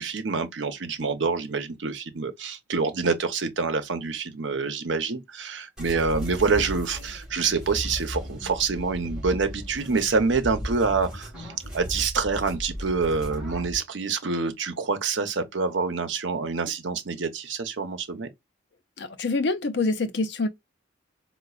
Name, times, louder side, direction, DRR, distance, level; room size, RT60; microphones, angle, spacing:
voice 1, 0.0-18.3, right 4 dB, 80° right, 0.8 m, -27 dB
sound 1, 5.8-13.8, equal, 5° right, 1.9 m, -36 dB
voice 2, 19.0-20.5, left 3 dB, 65° left, 0.5 m, -26 dB
4.4 x 2.2 x 2.4 m
head